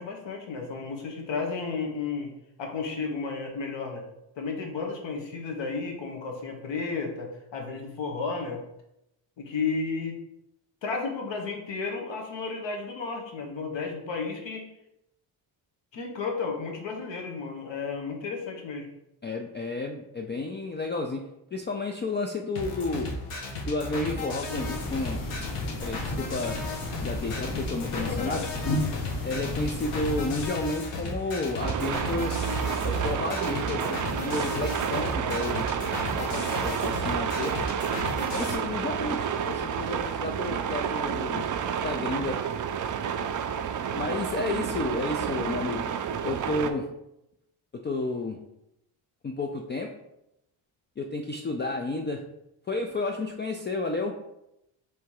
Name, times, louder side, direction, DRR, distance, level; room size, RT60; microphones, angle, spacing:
voice 1, 0.0-2.3 2.6-4.0 4.4-8.6 9.4-10.2 10.8-14.6 15.9-18.9 27.2-28.5, left 4 dB, 60° left, 2 dB, 1.2 m, -33 dB
voice 2, 19.2-23.1 23.6-25.2 25.8-26.6 27.0-28.5 29.2-32.4 32.8-34.0 34.2-35.7 36.2-37.5 38.3-41.5 41.8-42.4 43.9-45.9 46.2-46.9 47.7-48.4 49.2-49.9 51.0-52.2 52.7-54.2, left 2 dB, 25° left, 2 dB, 0.4 m, -31 dB
sound 1, 22.6-38.6, left 2 dB, 85° left, 1.1 m, -35 dB
sound 2, 24.5-30.5, left 2 dB, 40° left, 1.0 m, -34 dB
sound 3, 31.6-46.7, right 8 dB, 40° right, 0.4 m, -30 dB
3.3 x 2.9 x 4.7 m, 0.84 s
cardioid pair, 80°, 49 cm